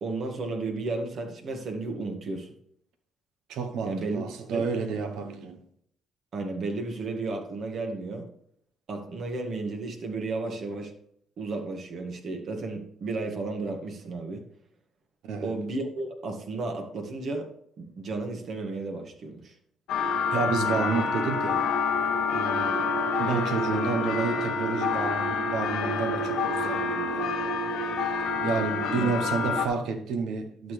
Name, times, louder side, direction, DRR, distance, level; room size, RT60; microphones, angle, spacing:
voice 1, 0.0-2.5 3.8-4.2 4.5-4.7 6.3-8.3 8.9-10.9 11.4-14.4 15.4-17.5 17.8-19.5 28.9-29.1, right 3 dB, 60° right, 1.9 m, -33 dB
voice 2, 3.5-5.6 15.2-15.5 20.3-21.7 22.3-22.9 23.2-27.3 28.4-30.7, right 4 dB, 80° right, 1.1 m, -30 dB
sound 1, 19.9-29.7, left 4 dB, 90° left, 1.1 m, -27 dB
11.5 x 6.8 x 3.4 m
supercardioid pair, 75°, 0 cm